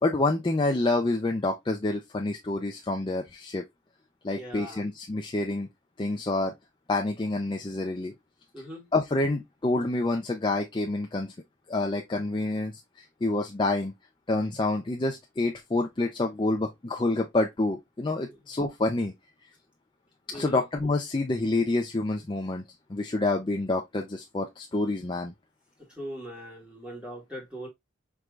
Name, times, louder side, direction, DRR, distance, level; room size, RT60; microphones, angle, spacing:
voice 1, 0.0-3.6 4.2-5.7 6.0-6.5 6.9-8.1 8.9-11.3 11.7-13.9 14.3-19.1 20.3-22.6 22.9-25.3, left 2 dB, 25° left, 0.5 m, -28 dB
voice 2, 4.3-4.9 8.5-8.9 18.3-18.4 20.3-20.6 25.9-27.7, equal, 5° right, 1.8 m, -40 dB
4.6 x 3.2 x 2.3 m
head